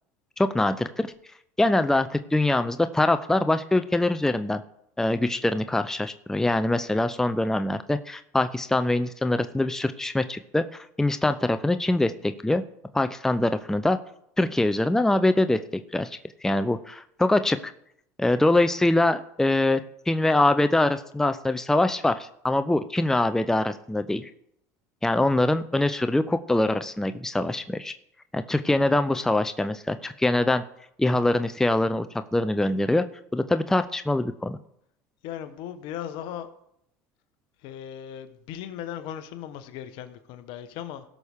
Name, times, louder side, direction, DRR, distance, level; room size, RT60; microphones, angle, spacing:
voice 1, 0.4-1.1 1.6-4.6 5.0-10.6 11.0-12.6 12.9-14.0 14.4-15.6 15.9-17.7 18.2-19.8 20.1-24.3 25.0-27.9 28.3-30.6 31.0-32.1 32.3-33.0 33.3-34.6, left 2 dB, 5° left, 10 dB, 0.5 m, -23 dB
voice 2, 35.2-36.5 37.6-41.0, left 10 dB, 65° left, 10 dB, 1.1 m, -37 dB
17.0 x 6.2 x 3.6 m, 0.73 s
hypercardioid pair, 90°, 9 cm